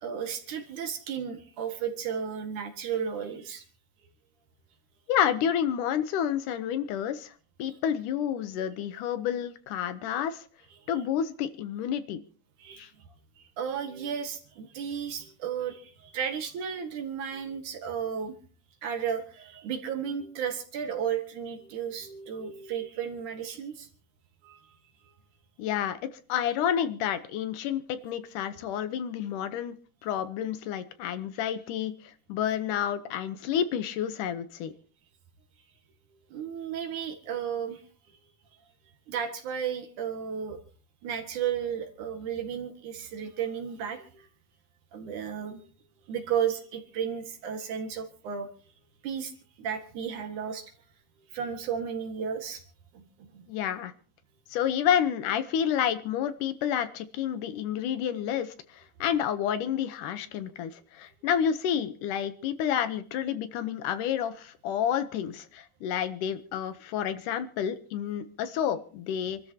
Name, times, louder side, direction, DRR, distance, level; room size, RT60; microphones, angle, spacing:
voice 1, 0.0-3.6 12.6-12.8 13.6-18.3 18.8-23.9 24.4-24.6 36.3-37.8 39.1-40.6 41.0-44.3 44.9-45.6 46.1-48.5 49.0-49.3 49.6-50.6 51.3-52.6 52.9-53.4 60.4-60.6, right 8 dB, 70° right, 5 dB, 3.1 m, -33 dB
voice 2, 5.1-7.3 7.6-10.4 10.9-12.2 12.8-12.9 25.6-26.0 26.3-29.8 30.0-34.7 53.5-53.9 54.5-69.4, left 9 dB, 75° left, 11 dB, 2.4 m, -29 dB
27.5 x 13.0 x 2.9 m, 0.41 s
omnidirectional pair, 3.8 m